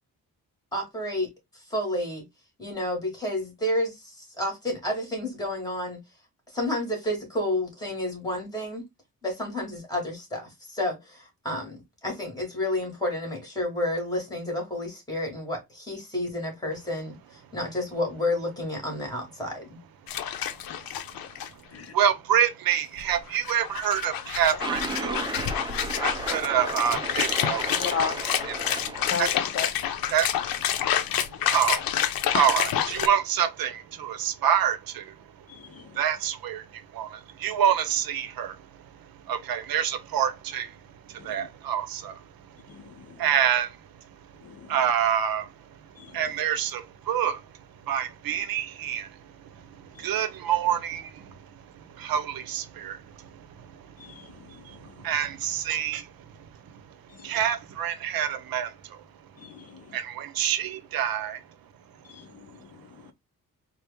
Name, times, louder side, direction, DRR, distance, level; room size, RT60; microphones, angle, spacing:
voice 1, 0.7-2.2 2.6-6.0 6.5-8.8 9.2-19.8, left 1 dB, 10° left, 1.7 m, -30 dB
sound 1, 20.1-21.5 21.8-21.9 23.0-33.1, left 10 dB, 90° left, 0.6 m, -28 dB
voice 2, 20.2-28.1 28.5-29.1 30.1-61.5 61.9-62.0 62.5-62.6 62.9-63.1, right 9 dB, 80° right, 0.6 m, -29 dB
sound 2, 24.6-29.6, right 3 dB, 15° right, 0.4 m, -35 dB
voice 3, 27.7-28.2 29.1-29.7 30.7-31.2 35.5-36.0 41.2-41.5 42.7-43.2 44.4-44.8 46.0-46.2 49.9-50.2 54.0-55.1 57.1-57.4 59.4-60.0 62.0-63.1, left 6 dB, 45° left, 0.4 m, -37 dB
4.3 x 2.0 x 3.4 m
wide cardioid pair, 155°, 34 cm